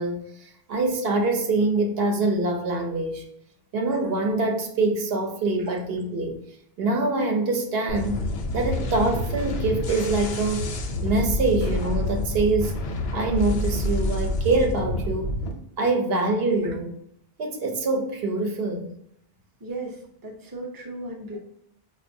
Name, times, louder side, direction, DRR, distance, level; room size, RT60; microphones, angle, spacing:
voice 1, 0.0-3.2 3.7-6.4 6.8-8.3 8.5-10.7 11.0-12.7 13.1-15.3 15.8-16.9 17.4-18.9, right 2 dB, 75° right, 3 dB, 0.8 m, -24 dB
sound 1, 7.9-15.5, left 1 dB, 75° left, 0.8 m, -28 dB
voice 2, 19.6-21.4, right 2 dB, 25° right, 0 dB, 0.5 m, -36 dB
5.1 x 2.2 x 2.6 m, 0.70 s
omnidirectional pair, 1.0 m